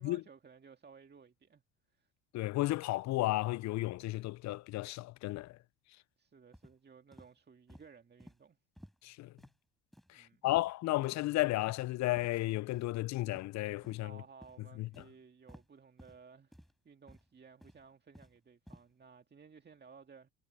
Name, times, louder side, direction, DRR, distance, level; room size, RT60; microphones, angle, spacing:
voice 1, 0.0-1.6 1.9-2.1 6.2-8.6 10.1-10.5 13.9-16.6 16.8-20.3, right 5 dB, 30° right, 2.0 m, -57 dB
voice 2, 2.3-5.6 9.0-9.3 10.1-14.1 14.8-14.9, left 18 dB, 50° left, 0.6 m, -33 dB
sound 1, 6.5-6.8 7.1-7.3 7.7-7.9 8.2-8.4 8.8-9.0 9.4-9.5 9.9-10.1 10.5-10.7 11.0-11.2 11.6-11.8 12.2-12.3 12.7-12.9 13.3-13.5 13.8-14.1 14.4-14.6 14.9-15.1 15.5-15.7 16.0-16.2 16.5-16.7 17.1-17.3 17.6-18.4 18.7-18.8, equal, ahead, 6.9 m, -56 dB
hypercardioid pair, 65°, 36 cm